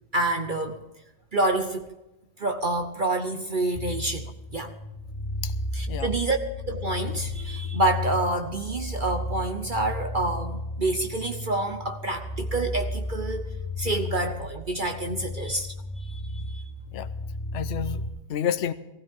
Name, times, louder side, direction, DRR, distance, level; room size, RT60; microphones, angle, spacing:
voice 1, 0.1-0.8 1.3-1.9 2.4-4.7 5.7-6.4 6.7-13.5 13.8-16.6, right 2 dB, 40° right, 6 dB, 1.0 m, -28 dB
sound 1, 3.7-18.1, left 2 dB, 5° left, 3.1 m, -34 dB
voice 2, 17.5-18.7, left 9 dB, 60° left, 10 dB, 1.1 m, -30 dB
19.0 x 16.0 x 3.7 m, 0.97 s
omnidirectional pair, 1.4 m